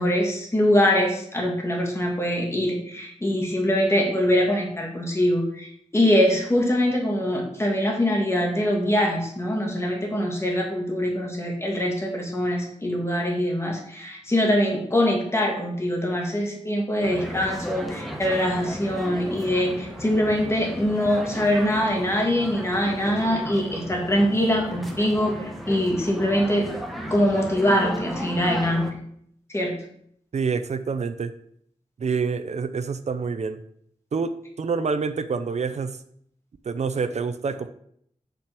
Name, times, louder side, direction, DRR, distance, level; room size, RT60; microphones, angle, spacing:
voice 1, 0.0-26.7 27.1-29.0 29.5-29.8, left 1 dB, 20° left, 0 dB, 2.1 m, -23 dB
sound 1, 17.0-28.9, equal, ahead, 1.4 m, -34 dB
voice 2, 30.3-31.3 32.0-33.6 34.1-34.3 34.6-36.0 36.7-37.7, right 5 dB, 60° right, 11 dB, 0.6 m, -27 dB
6.7 x 5.8 x 6.1 m, 0.68 s
wide cardioid pair, 125°, 13 cm